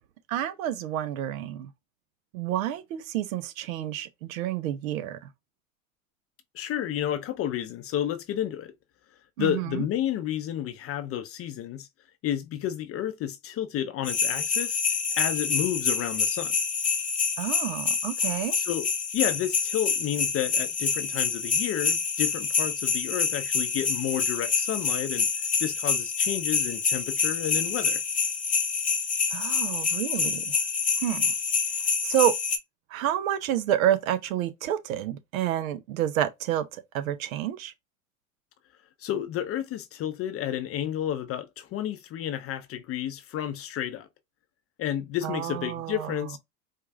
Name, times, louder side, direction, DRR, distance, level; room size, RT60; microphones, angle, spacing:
voice 1, 0.3-1.7 2.3-5.2 9.4-9.8 17.4-18.6 29.3-30.6 31.0-31.3 32.0-32.3 32.9-37.7 45.2-46.1, right 11 dB, 80° right, 0.7 m, -29 dB
voice 2, 6.5-8.7 9.4-11.9 12.2-14.8 15.2-16.5 18.6-18.9 19.1-28.0 39.0-44.1 44.8-46.4, left 11 dB, 35° left, 0.5 m, -31 dB
sound 1, 14.1-32.6, left 5 dB, 20° left, 1.0 m, -27 dB
4.6 x 2.4 x 2.3 m
hypercardioid pair, 90°, 41 cm